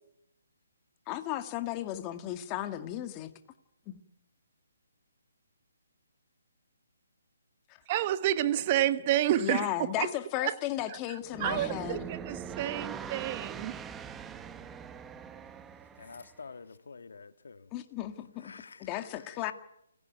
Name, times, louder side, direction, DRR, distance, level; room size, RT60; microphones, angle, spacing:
voice 1, 1.1-3.3 3.9-4.0 9.4-12.1 17.7-18.5 18.8-19.5, left 13 dB, 20° left, 2.0 m, -35 dB
voice 2, 7.9-9.7 10.0-10.1 10.4-10.5 11.4-13.8, right 13 dB, 30° right, 1.0 m, -29 dB
sound 1, 11.2-16.4, right 7 dB, 10° right, 1.3 m, -42 dB
voice 3, 16.0-17.7 18.4-18.8, left 4 dB, 75° left, 1.8 m, -48 dB
28.5 x 17.0 x 9.4 m
hypercardioid pair, 155°, 0 cm